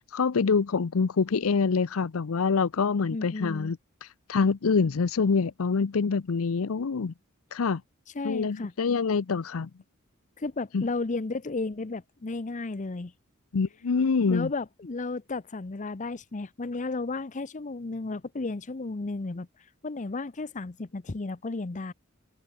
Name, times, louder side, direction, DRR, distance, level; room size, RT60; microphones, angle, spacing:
voice 1, 0.0-3.8 4.3-7.1 7.5-7.8 8.2-9.7 10.7-10.9 13.5-14.5, left 5 dB, 90° left, 0.6 m, -25 dB
voice 2, 3.1-3.7 8.1-8.7 10.4-13.1 14.3-19.5 19.8-21.9, left 3 dB, 35° left, 0.7 m, -33 dB
head